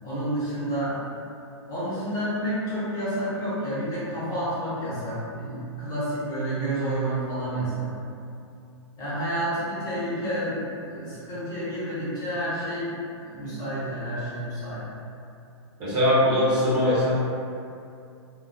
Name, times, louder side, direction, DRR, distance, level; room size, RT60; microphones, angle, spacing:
voice 1, 0.0-0.9 1.7-7.9 9.0-14.8, right 1 dB, 25° left, -10 dB, 0.9 m, -30 dB
voice 2, 15.8-17.1, left 1 dB, 25° right, -11 dB, 0.9 m, -21 dB
2.2 x 2.2 x 2.6 m, 2.5 s
hypercardioid pair, 135°, 16 cm